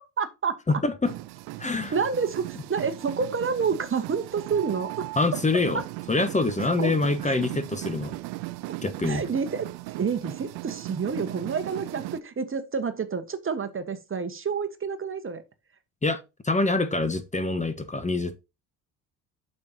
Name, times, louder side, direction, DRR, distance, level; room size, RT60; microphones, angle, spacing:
voice 1, 0.2-0.5 1.9-5.1 5.7-5.8 6.8-7.0 7.2-7.4 9.1-9.7 10.0-15.4, right 5 dB, 30° right, 1.3 m, -28 dB
voice 2, 0.7-1.1 1.6-1.9 5.2-5.8 6.1-8.1 8.8-9.2 16.0-18.4, left 3 dB, 15° left, 1.2 m, -25 dB
sound 1, 1.0-12.2, right 19 dB, 60° right, 0.6 m, -38 dB
8.3 x 6.6 x 2.8 m
hypercardioid pair, 60°, 43 cm